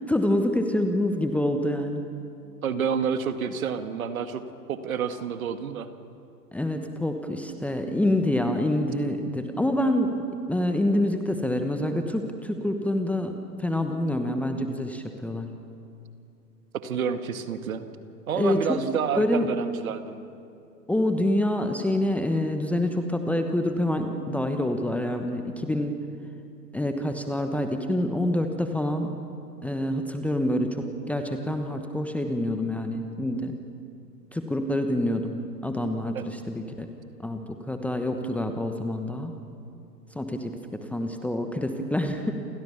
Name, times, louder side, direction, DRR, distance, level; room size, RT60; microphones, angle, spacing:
voice 1, 0.1-2.0 6.5-10.2 10.5-15.6 18.3-18.8 19.2-19.5 20.9-26.0 26.7-29.2 29.6-33.6 34.3-36.9 37.2-39.3 40.1-42.3, left 1 dB, 5° left, 5 dB, 1.2 m, -27 dB
voice 2, 2.6-4.4 4.7-5.9 16.7-17.8 18.3-20.2 36.1-36.2, right 7 dB, 55° right, 8 dB, 2.1 m, -29 dB
29.0 x 27.5 x 7.1 m, 2.6 s
figure-of-eight pair, 115°, 49 cm